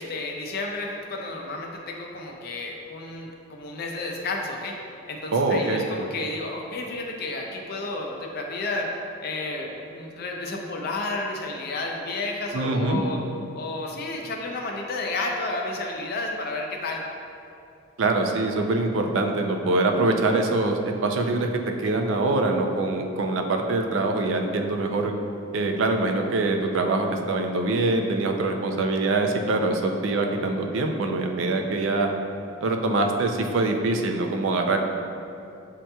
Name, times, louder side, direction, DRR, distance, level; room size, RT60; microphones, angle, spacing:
voice 1, 0.0-4.8 5.1-13.2 13.5-17.0, left 2 dB, 50° left, 1 dB, 0.4 m, -31 dB
voice 2, 5.3-5.9 12.5-13.0 18.0-21.5 21.8-25.1 25.5-32.1 32.6-34.8, right 2 dB, 70° right, 4 dB, 0.4 m, -24 dB
7.5 x 2.8 x 2.2 m, 2.6 s
head